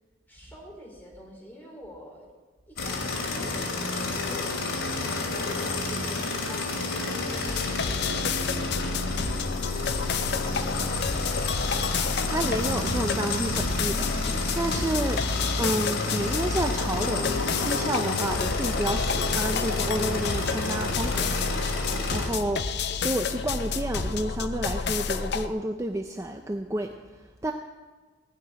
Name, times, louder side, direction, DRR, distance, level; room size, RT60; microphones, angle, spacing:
voice 1, 0.3-2.3 2.7-8.2 9.0-11.2, equal, 10° left, -3 dB, 3.8 m, -48 dB
sound 1, 2.8-22.3, left 2 dB, 80° left, 2.7 m, -30 dB
sound 2, 7.4-25.5, left 5 dB, 55° left, 0.7 m, -29 dB
voice 2, 12.3-15.2 15.6-22.7 23.0-26.9 27.4-27.5, right 1 dB, 15° right, 4 dB, 0.5 m, -30 dB
15.5 x 6.0 x 9.9 m, 1.3 s
head